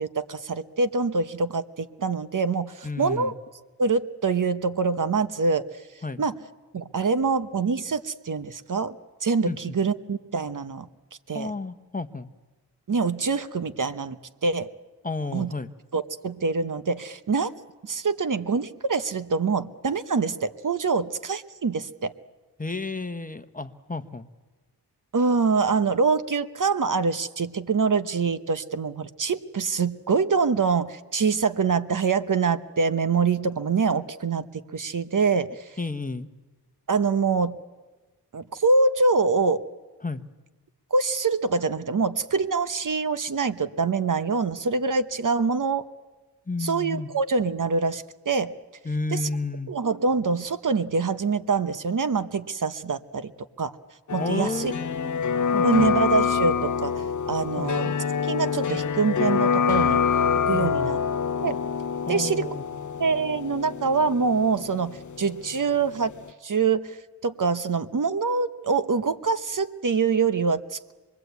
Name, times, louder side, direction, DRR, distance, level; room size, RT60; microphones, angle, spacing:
voice 1, 0.0-3.3 3.8-5.6 6.2-6.3 6.7-8.9 9.2-10.9 11.3-11.5 12.9-14.2 14.4-14.7 15.3-15.5 15.9-17.5 17.8-22.1 25.1-34.5 34.7-35.7 36.9-37.6 38.3-39.6 40.9-45.8 46.6-48.5 49.1-49.2 49.7-53.3 53.6-53.7 54.1-54.7 55.6-57.9 58.2-60.0 60.5-61.0 61.4-61.5 62.1-62.5 63.0-66.1 66.4-67.0 67.2-70.9, right 4 dB, 50° right, 12 dB, 1.0 m, -25 dB
voice 2, 2.8-3.4 6.0-6.2 9.4-9.8 11.3-12.3 15.0-15.7 22.6-24.3 35.8-36.3 40.0-40.2 46.5-47.1 48.8-49.7 54.2-55.2 55.5-56.0 57.6-57.8 60.5-61.0 62.1-62.6, left 3 dB, 20° left, 10 dB, 1.1 m, -32 dB
sound 1, 54.1-65.8 66.1-66.2, left 6 dB, 45° left, 0.9 m, -26 dB
26.5 x 21.0 x 8.2 m, 1.2 s
cardioid pair, 55°, 40 cm